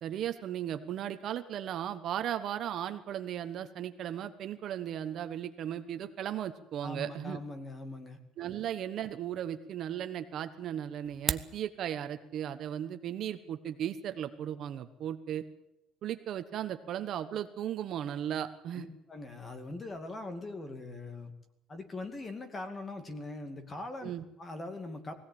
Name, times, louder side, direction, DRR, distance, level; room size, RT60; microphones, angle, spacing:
voice 1, 0.0-7.4 8.4-15.4 16.0-18.9 24.0-24.2, right 10 dB, 50° right, 9 dB, 1.2 m, -36 dB
voice 2, 6.8-8.2 18.7-21.3 21.7-24.1 24.4-25.1, left 2 dB, 20° left, 8 dB, 2.4 m, -41 dB
sound 1, 11.0-11.6, right 4 dB, 15° right, 0.7 m, -33 dB
20.5 x 16.5 x 8.9 m, 0.83 s
cardioid pair, 155°, 0 cm